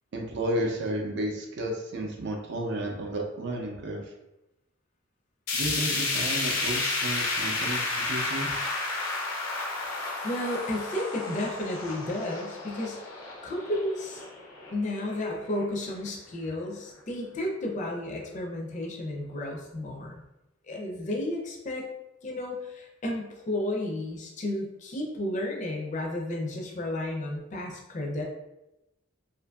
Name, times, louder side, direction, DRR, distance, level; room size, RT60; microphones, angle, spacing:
voice 1, 0.1-4.1 5.5-8.5, right 1 dB, 60° right, 0 dB, 0.4 m, -32 dB
sound 1, 5.5-15.6 16.0-16.1 16.5-16.6 17.5-17.6, left 3 dB, 90° left, 0.5 m, -32 dB
voice 2, 10.2-14.2 14.7-20.1 20.7-21.8 22.2-28.2, left 1 dB, 35° left, -1 dB, 0.4 m, -32 dB
2.6 x 2.5 x 2.2 m, 0.91 s
head